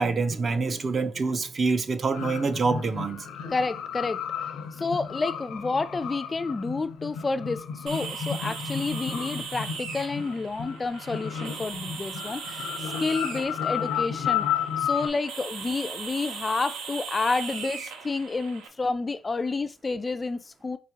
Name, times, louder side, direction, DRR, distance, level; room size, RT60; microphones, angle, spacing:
voice 1, 0.0-3.3, right 4 dB, 40° right, 0.5 m, -26 dB
sound 1, 2.1-15.1, left 8 dB, 85° left, 0.6 m, -33 dB
voice 2, 3.5-4.2 4.8-14.5 14.8-20.8, left 3 dB, 25° left, 0.3 m, -30 dB
sound 2, 7.9-18.7, right 6 dB, 90° right, 0.7 m, -39 dB
4.8 x 3.0 x 2.9 m
cardioid pair, 90°, 0 cm